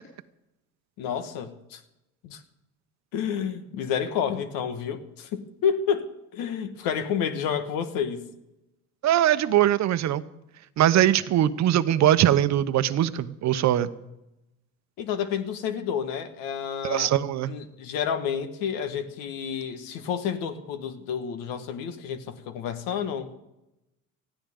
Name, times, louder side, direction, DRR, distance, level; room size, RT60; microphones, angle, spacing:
voice 1, 1.0-1.8 2.2-2.4 3.1-6.1 6.3-8.3 15.0-17.2 17.5-23.4, left 7 dB, 90° left, 8 dB, 1.6 m, -30 dB
voice 2, 9.0-10.2 10.8-13.9 16.8-17.5, right 12 dB, 55° right, 13 dB, 0.9 m, -21 dB
19.5 x 14.5 x 3.8 m, 0.92 s
cardioid pair, 110°, 33 cm